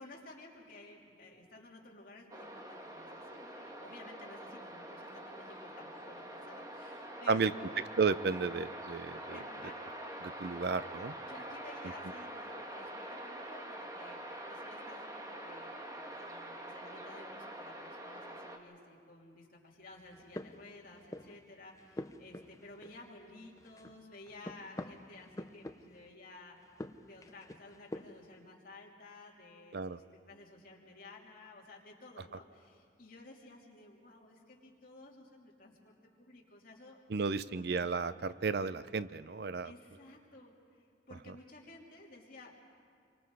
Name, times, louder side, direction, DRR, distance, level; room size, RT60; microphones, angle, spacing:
voice 1, 0.0-7.8 9.3-10.0 10.5-10.6 11.3-15.7 16.1-37.7 39.6-42.6, left 2 dB, 50° left, -2 dB, 3.0 m, -54 dB
sound 1, 2.3-18.6, right 1 dB, 20° right, 1.4 m, -45 dB
voice 2, 8.0-9.4 10.2-11.1 29.7-30.0 37.1-39.7, right 4 dB, 60° right, 15 dB, 0.5 m, -33 dB
sound 2, 20.0-21.4 21.7-23.3 23.6-26.1 26.6-28.3, left 1 dB, 20° left, 0.6 m, -46 dB
28.5 x 24.0 x 4.8 m, 2.2 s
head